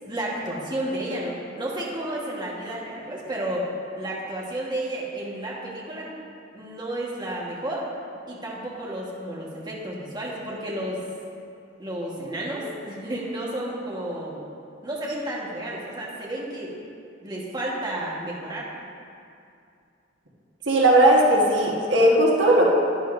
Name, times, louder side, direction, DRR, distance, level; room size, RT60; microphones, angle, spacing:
voice 1, 0.0-3.7 4.0-6.1 6.5-7.9 8.3-11.0 11.8-14.4 14.8-16.7 17.2-18.7, right 1 dB, 25° right, -5 dB, 1.4 m, -32 dB
voice 2, 20.7-22.7, right 1 dB, 75° right, -3 dB, 1.4 m, -17 dB
11.0 x 10.0 x 2.6 m, 2.5 s
head